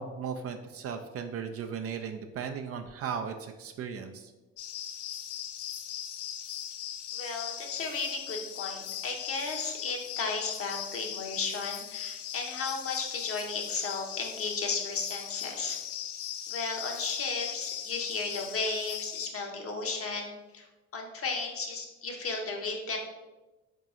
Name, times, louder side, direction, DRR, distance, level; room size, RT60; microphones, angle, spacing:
voice 1, 0.0-4.3, right 6 dB, 45° right, 6 dB, 0.5 m, -36 dB
sound 1, 4.6-19.3, left 10 dB, 60° left, 0.5 m, -39 dB
voice 2, 7.1-15.8 16.5-20.6 20.9-23.0, left 4 dB, 40° left, 2 dB, 0.9 m, -34 dB
3.9 x 2.8 x 3.6 m, 1.1 s
hypercardioid pair, 55°, 34 cm